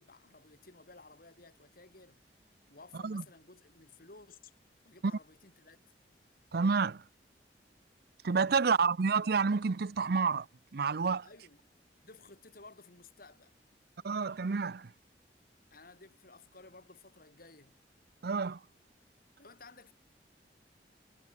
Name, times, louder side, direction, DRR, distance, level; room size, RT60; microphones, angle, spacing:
voice 1, 0.0-2.2 2.7-4.5 4.8-5.8 8.6-8.8 11.2-11.6 12.0-13.6 15.7-17.8 19.4-19.9, left 3 dB, 55° left, 3.6 m, -55 dB
voice 2, 6.5-7.0 8.2-10.5 10.7-11.3 14.0-14.9 18.2-18.6, right 5 dB, 60° right, 0.6 m, -29 dB
head